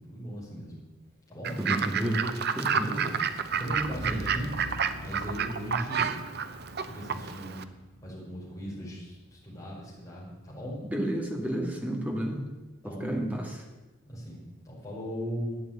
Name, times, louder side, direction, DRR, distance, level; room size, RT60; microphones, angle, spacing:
voice 1, 0.1-0.7 1.3-1.6 2.0-2.3 2.7-3.2 3.5-4.5 5.0-6.2 6.8-7.6 8.0-9.1 9.4-10.8 12.8-13.1 14.1-15.5, equal, 15° left, -6 dB, 5.5 m, -37 dB
Fowl / Bird, 1.4-7.6, right 7 dB, 50° right, 0.7 m, -30 dB
voice 2, 1.6-2.2 2.6-2.9 10.9-12.5 12.8-13.6, right 1 dB, 5° right, 1 dB, 1.9 m, -31 dB
sound 1, 3.4-9.3, equal, 70° right, 6.0 m, -43 dB
12.0 x 8.4 x 8.9 m, 1.1 s
head